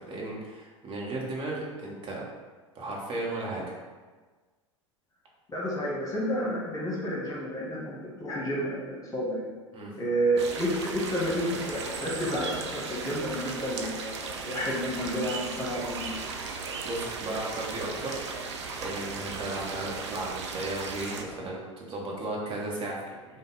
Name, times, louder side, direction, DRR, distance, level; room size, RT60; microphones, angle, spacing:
voice 1, 0.0-2.2 2.7-3.6 9.7-9.9 16.8-18.2 18.8-23.1, right 2 dB, 30° right, -3 dB, 1.1 m, -35 dB
voice 2, 5.5-9.5 9.9-16.1, equal, 20° left, -4 dB, 1.2 m, -30 dB
sound 1, 10.4-21.2, right 4 dB, 60° right, 0.5 m, -36 dB
5.3 x 2.2 x 4.0 m, 1.4 s
figure-of-eight pair, 85°, 16 cm